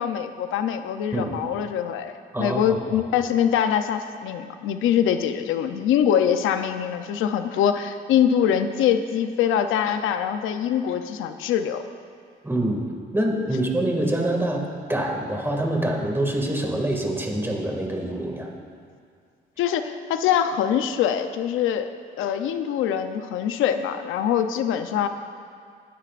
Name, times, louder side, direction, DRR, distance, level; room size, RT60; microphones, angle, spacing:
voice 1, 0.0-11.8 19.6-21.9 22.2-25.1, left 9 dB, 85° left, 8 dB, 0.7 m, -23 dB
voice 2, 2.3-3.0 12.4-12.8 13.1-18.5, right 1 dB, 10° right, 0 dB, 2.1 m, -25 dB
22.0 x 10.0 x 2.5 m, 2.2 s
cardioid pair, 90°, 20 cm